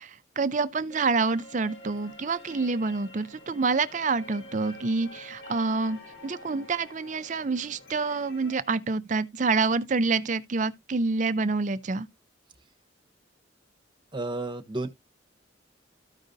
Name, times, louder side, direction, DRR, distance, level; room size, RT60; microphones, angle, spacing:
voice 1, 0.0-12.1, right 4 dB, 40° right, 0.5 m, -27 dB
sound 1, 0.9-8.6, left 2 dB, 80° left, 4.9 m, -47 dB
voice 2, 14.1-14.9, right 2 dB, 25° right, 1.1 m, -31 dB
14.0 x 5.1 x 2.6 m
head